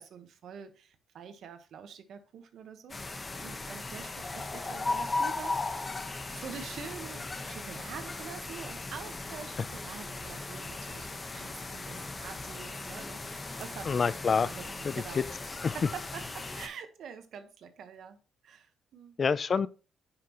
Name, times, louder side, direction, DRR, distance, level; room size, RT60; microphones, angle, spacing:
voice 1, 0.0-5.6 6.3-14.1 14.5-15.3 15.7-18.2 18.4-19.2, right 7 dB, 70° right, 1.3 m, -46 dB
sound 1, 2.9-16.7, left 3 dB, 25° left, 1.1 m, -37 dB
voice 2, 13.9-14.5 14.8-15.2 15.6-15.7 19.2-19.7, left 5 dB, 40° left, 0.5 m, -27 dB
9.5 x 5.9 x 3.0 m
cardioid pair, 90°, 0 cm